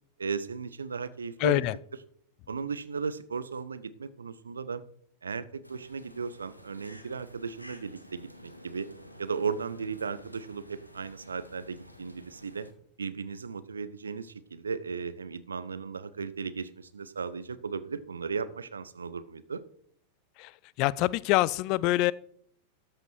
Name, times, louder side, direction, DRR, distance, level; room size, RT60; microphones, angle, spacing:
voice 1, 0.2-1.6 2.5-4.8 5.2-8.9 9.2-12.7 13.0-19.6, right 5 dB, 75° right, 0.5 m, -36 dB
voice 2, 1.4-1.7 20.4-20.5 20.8-22.1, left 17 dB, 40° left, 0.3 m, -25 dB
sound 1, 5.6-12.7, equal, 90° left, 0.9 m, -51 dB
13.0 x 5.3 x 4.5 m
figure-of-eight pair, 90°, 0 cm